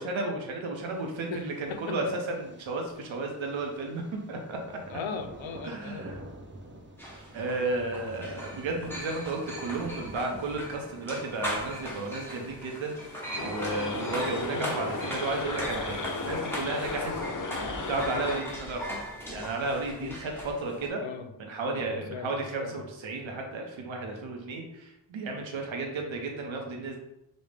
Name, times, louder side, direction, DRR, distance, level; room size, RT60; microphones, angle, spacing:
voice 1, 0.0-4.0 4.3-4.6 5.6-6.2 7.3-17.1 17.4-17.6 17.9-19.0 19.3-21.0 21.4-27.0, right 2 dB, 85° right, 1 dB, 0.7 m, -33 dB
Thunder, 0.7-18.7, right 1 dB, 25° right, 0.6 m, -50 dB
voice 2, 1.3-2.0 4.9-6.1 20.0-20.2 21.0-21.3 21.7-22.3 22.6-22.8, left 5 dB, 85° left, 7 dB, 0.6 m, -38 dB
sound 1, 7.0-20.9, equal, 5° left, 1.0 m, -39 dB
sound 2, 13.3-18.4, left 3 dB, 45° left, 0.6 m, -34 dB
5.3 x 2.0 x 3.3 m, 0.89 s
wide cardioid pair, 50°, 46 cm